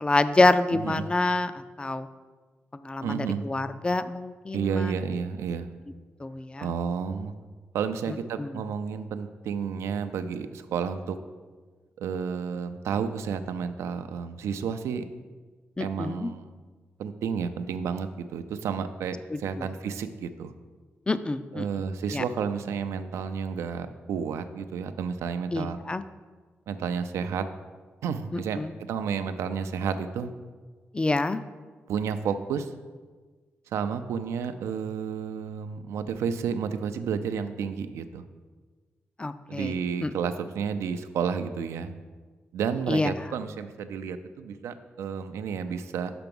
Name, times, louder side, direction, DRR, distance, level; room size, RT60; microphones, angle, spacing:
voice 1, 0.0-2.1 2.7-5.0 6.2-6.7 8.1-8.6 15.8-16.3 19.3-19.7 21.1-21.7 22.1-22.2 25.5-26.0 28.3-28.7 30.9-31.4 39.2-40.1 42.9-43.1, left 2 dB, 20° left, 12 dB, 0.4 m, -27 dB
voice 2, 3.0-3.4 4.5-5.7 6.6-7.3 7.7-11.2 12.0-15.0 15.8-16.6 17.0-20.5 21.5-25.8 26.7-27.5 28.0-28.6 28.9-30.3 31.9-32.7 33.7-38.2 39.5-41.9 42.5-46.1, right 6 dB, 90° right, 9 dB, 0.4 m, -31 dB
5.9 x 5.9 x 5.3 m, 1.4 s
cardioid pair, 60°, 5 cm